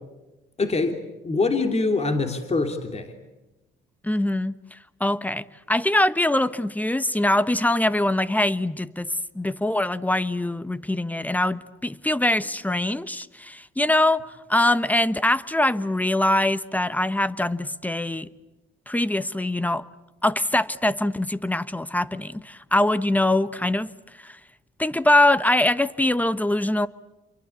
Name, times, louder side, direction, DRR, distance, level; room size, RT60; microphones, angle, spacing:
voice 1, 0.6-3.1, left 3 dB, 30° left, 3.0 m, -24 dB
voice 2, 4.0-14.2 14.5-18.3 18.9-19.8 20.2-23.9 24.2-24.4 24.8-26.9, left 1 dB, 10° left, 1.1 m, -23 dB
29.0 x 23.5 x 8.4 m
cardioid pair, 90°, 20 cm